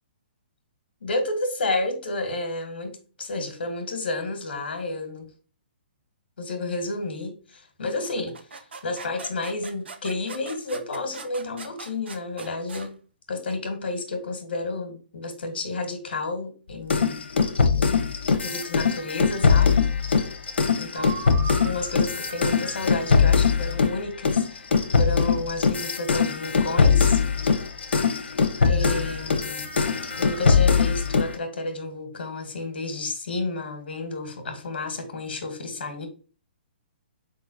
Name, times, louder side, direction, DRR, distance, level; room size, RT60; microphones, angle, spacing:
voice 1, 1.0-5.2 6.4-12.9 13.3-17.2 17.7-19.9 20.8-21.1 21.6-27.2 28.7-29.7 30.2-36.1, left 2 dB, 65° left, 7 dB, 1.6 m, -31 dB
mp balloon sounds, 8.0-12.9, right 4 dB, 85° right, 1.0 m, -41 dB
sound 1, 16.9-24.0 24.2-31.3, left 5 dB, 85° left, 0.9 m, -21 dB
sound 2, 20.9-22.9 28.6-31.3, right 4 dB, 25° right, 1.2 m, -40 dB
4.6 x 3.8 x 2.6 m, 0.36 s
hypercardioid pair, 180°, 6 cm